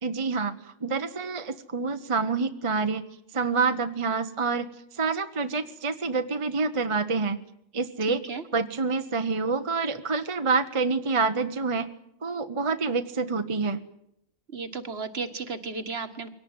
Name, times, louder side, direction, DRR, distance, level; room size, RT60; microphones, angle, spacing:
voice 1, 0.0-0.5 0.8-3.1 3.3-4.7 4.9-7.4 7.7-8.2 8.5-11.9 12.2-13.8, right 4 dB, 25° right, 8 dB, 1.1 m, -27 dB
voice 2, 8.0-8.4 14.5-16.3, right 4 dB, 50° right, 10 dB, 1.8 m, -34 dB
23.5 x 18.0 x 9.6 m, 0.76 s
omnidirectional pair, 1.4 m